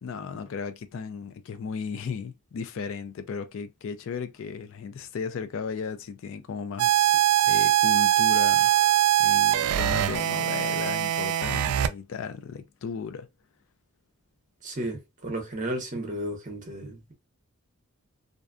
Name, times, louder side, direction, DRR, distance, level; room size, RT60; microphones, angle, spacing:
voice 1, 0.0-7.2 7.5-8.7 9.2-13.3, left 5 dB, 60° left, 0.3 m, -35 dB
sound 1, 6.8-11.9, right 13 dB, 85° right, 0.3 m, -22 dB
voice 2, 14.6-17.1, right 1 dB, 35° right, 0.7 m, -33 dB
2.5 x 2.2 x 2.4 m
head